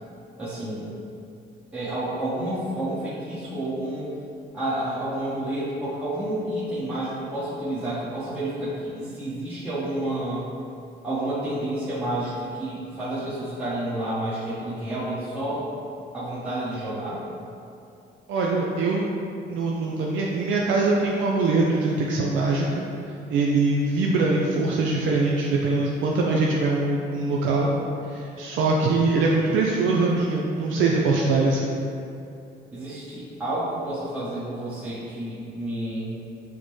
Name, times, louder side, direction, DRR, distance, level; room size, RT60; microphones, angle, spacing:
voice 1, 0.4-0.9 1.7-4.1 4.5-10.5 11.0-15.7 16.1-17.2 32.7-36.1, right 1 dB, 5° right, -13 dB, 1.0 m, -30 dB
voice 2, 18.3-19.1 19.5-22.8 23.3-27.7 28.1-31.7, right 3 dB, 75° right, -2 dB, 0.4 m, -23 dB
5.0 x 2.1 x 3.1 m, 2.6 s
cardioid pair, 90°, 20 cm